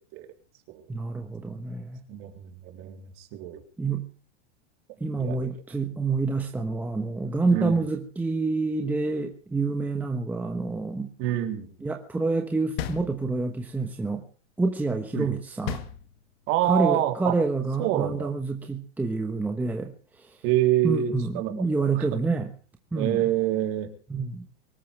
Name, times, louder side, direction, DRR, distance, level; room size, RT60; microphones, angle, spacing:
voice 1, 0.9-2.0 3.8-4.1 5.0-11.1 11.8-14.2 14.6-15.8 16.6-20.4 20.8-22.5 22.9-23.2 24.1-24.5, right 3 dB, 5° right, 1.1 m, -28 dB
voice 2, 2.1-3.6 5.1-5.5 7.5-7.8 11.2-11.7 15.1-15.3 16.5-17.3 17.8-18.3 20.4-21.5 22.0-22.2 22.9-23.9, right 12 dB, 40° right, 3.5 m, -26 dB
sound 1, 12.8-13.7 15.7-16.6, left 10 dB, 55° left, 2.1 m, -35 dB
24.0 x 13.5 x 3.4 m
supercardioid pair, 160°, 35 cm